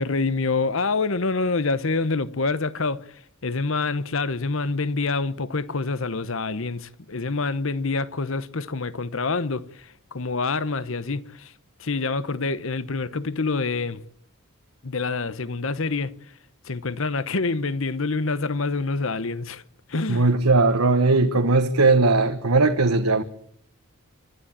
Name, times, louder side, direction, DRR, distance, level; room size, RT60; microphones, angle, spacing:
voice 1, 0.0-3.0 3.4-9.6 10.1-11.5 11.8-14.0 14.8-16.1 16.6-19.6 19.9-20.3, left 3 dB, 65° left, 1.0 m, -26 dB
voice 2, 20.1-23.2, right 3 dB, 85° right, 1.3 m, -19 dB
26.0 x 13.0 x 8.8 m
head